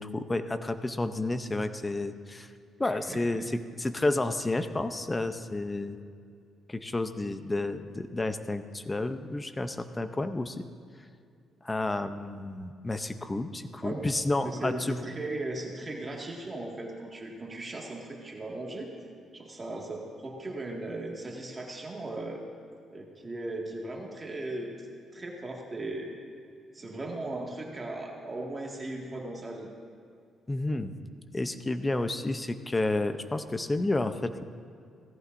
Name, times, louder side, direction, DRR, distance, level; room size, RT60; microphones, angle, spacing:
voice 1, 0.0-2.5 2.8-6.0 6.7-10.6 11.6-15.1 30.5-30.9 31.3-34.4, left 2 dB, 20° left, 10 dB, 0.7 m, -31 dB
voice 2, 2.8-3.2 13.8-14.1 14.4-18.9 19.3-22.4 22.9-24.7 25.1-26.1 26.7-29.7, right 2 dB, 30° right, -1 dB, 2.0 m, -37 dB
17.0 x 14.5 x 2.7 m, 2.3 s
cardioid pair, 90°, 0 cm